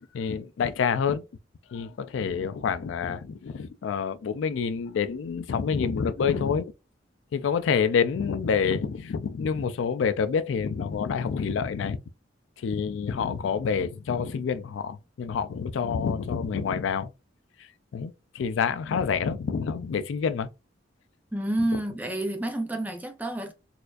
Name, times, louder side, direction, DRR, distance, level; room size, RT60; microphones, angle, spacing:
voice 1, 0.1-1.2 1.7-6.7 7.3-12.0 12.6-17.1 17.9-20.5, left 6 dB, 80° left, 0.3 m, -27 dB
voice 2, 21.3-23.5, right 1 dB, 10° right, 0.5 m, -29 dB
4.2 x 2.5 x 2.3 m
head